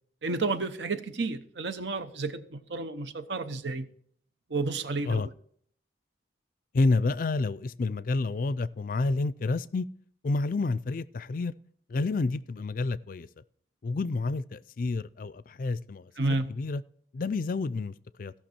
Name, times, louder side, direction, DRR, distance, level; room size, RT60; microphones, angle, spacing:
voice 1, 0.2-3.9 4.5-5.2 16.2-16.5, right 3 dB, 75° right, 0.9 m, -31 dB
voice 2, 6.7-9.9 10.2-11.5 11.9-13.3 13.8-16.1 16.5-16.8 17.1-18.3, left 3 dB, 50° left, 0.4 m, -29 dB
16.5 x 5.9 x 4.4 m
head